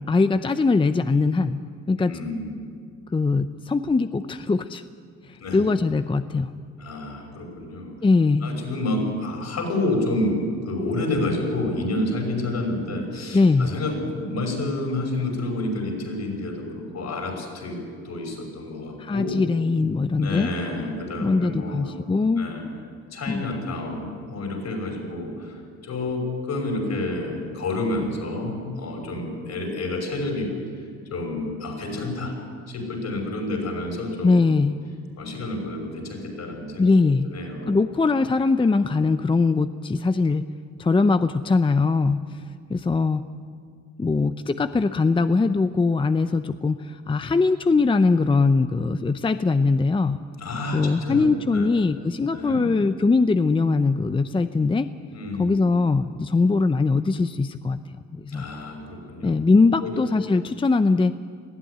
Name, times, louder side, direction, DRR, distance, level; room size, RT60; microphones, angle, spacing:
voice 1, 0.1-1.6 1.9-2.1 3.1-4.8 5.3-6.5 8.0-8.5 13.3-13.7 19.0-20.5 21.2-22.5 23.3-23.4 34.2-34.8 36.8-37.3 37.7-40.5 40.8-42.4 42.7-43.2 44.0-50.2 50.7-54.9 55.4-57.8 58.1-58.5 59.2-61.2, left 3 dB, 15° left, 11 dB, 0.6 m, -21 dB
voice 2, 2.0-2.5 5.4-5.7 6.8-7.9 8.4-17.8 18.0-19.4 20.2-22.0 22.4-22.7 23.1-30.8 31.1-32.3 32.7-34.3 35.2-36.9 37.2-37.8 50.4-51.7 52.3-52.6 55.1-55.7 58.3-59.4 59.8-59.9, left 2 dB, 60° left, 2 dB, 6.1 m, -29 dB
19.5 x 14.0 x 10.0 m, 2.1 s
cardioid pair, 90°, 30 cm